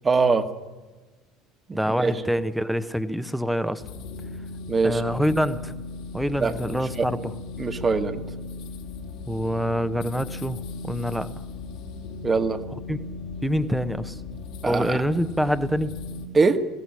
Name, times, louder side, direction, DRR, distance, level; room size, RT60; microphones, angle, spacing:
voice 1, 0.0-0.5 1.7-2.1 4.7-5.0 6.4-6.5 7.0-7.1 7.6-8.2 12.2-12.6 14.6-15.0 16.3-16.6, right 4 dB, 25° right, 8 dB, 1.9 m, -22 dB
voice 2, 1.7-3.8 4.8-5.7 6.1-7.3 9.3-11.3 12.9-13.0 13.4-14.2 14.6-15.9, equal, ahead, 12 dB, 1.3 m, -26 dB
sound 1, 3.8-16.3, left 3 dB, 60° left, 2.8 m, -37 dB
22.0 x 17.0 x 10.0 m, 1.2 s
figure-of-eight pair, 65°, 0 cm